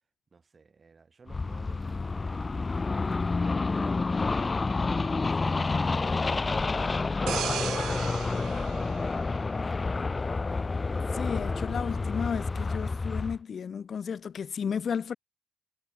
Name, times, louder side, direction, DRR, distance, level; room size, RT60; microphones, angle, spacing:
voice 1, 0.3-10.2, right 4 dB, 35° right, 6.3 m, -57 dB
sound 1, 1.3-13.4, left 3 dB, 25° left, 0.5 m, -29 dB
sound 2, 7.3-9.9 10.4-10.6, right 12 dB, 80° right, 0.5 m, -37 dB
voice 2, 11.1-15.1, left 7 dB, 50° left, 0.8 m, -33 dB
cardioid pair, 90°, 0 cm